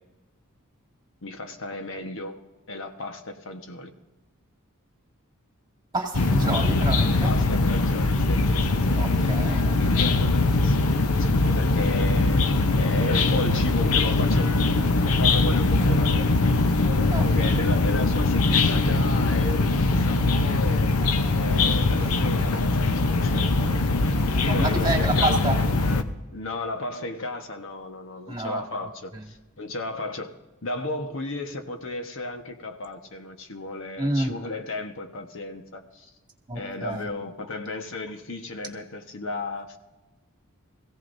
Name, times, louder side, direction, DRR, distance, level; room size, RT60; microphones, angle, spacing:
voice 1, 1.2-2.4 2.7-3.9 7.2-9.0 9.7-14.5 15.2-16.3 17.2-20.9 21.3-23.6 24.4-25.4 26.3-30.3 30.6-36.1 36.5-39.8, left 2 dB, 65° left, 5 dB, 1.3 m, -34 dB
voice 2, 5.9-7.3 9.0-10.2 17.1-17.9 22.1-22.4 24.1-25.6 28.3-28.6 34.0-34.3 36.5-37.1, right 2 dB, 20° right, 1 dB, 2.2 m, -29 dB
sound 1, 6.1-26.0, left 3 dB, 80° left, 0.8 m, -22 dB
22.0 x 16.0 x 2.7 m, 1.1 s
head